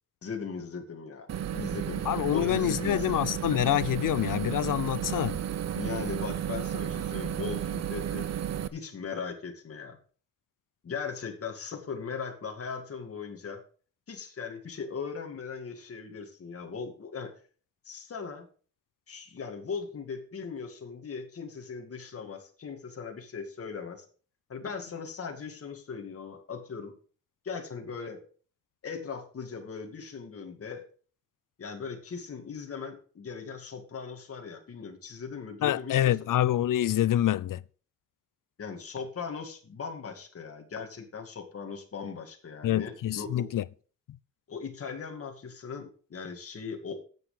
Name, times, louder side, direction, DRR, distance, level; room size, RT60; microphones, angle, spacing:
voice 1, 0.2-1.3 1.5-2.0 2.3-3.2 5.7-8.3 8.7-10.0 10.8-13.6 14.1-17.3 17.8-18.5 19.1-24.0 24.5-26.9 27.4-28.2 28.8-30.8 31.6-36.3 38.6-43.5 44.5-47.0, left 5 dB, 45° left, 2.3 m, -39 dB
sound 1, 1.3-8.7, right 10 dB, 55° right, 0.7 m, -33 dB
voice 2, 2.1-5.4 35.6-37.6 42.6-43.6, left 12 dB, 85° left, 0.6 m, -26 dB
10.5 x 8.0 x 5.0 m
wide cardioid pair, 175°, 31 cm